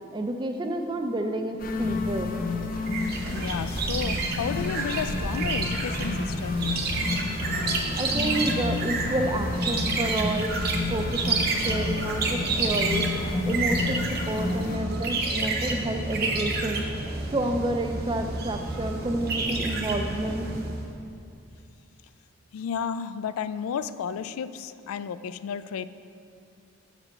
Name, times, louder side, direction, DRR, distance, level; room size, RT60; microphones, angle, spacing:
voice 1, 0.1-2.3 8.0-10.5 10.9-13.1 13.4-16.8 17.3-20.5, right 1 dB, 20° right, 5 dB, 0.4 m, -29 dB
sound 1, 1.6-14.8, left 3 dB, 40° left, 0.6 m, -31 dB
sound 2, 2.9-20.9, right 3 dB, 45° right, 0.8 m, -29 dB
voice 2, 3.3-6.7 11.2-11.6 22.5-25.9, left 7 dB, 85° left, 14 dB, 0.3 m, -33 dB
7.2 x 5.1 x 6.4 m, 2.5 s
head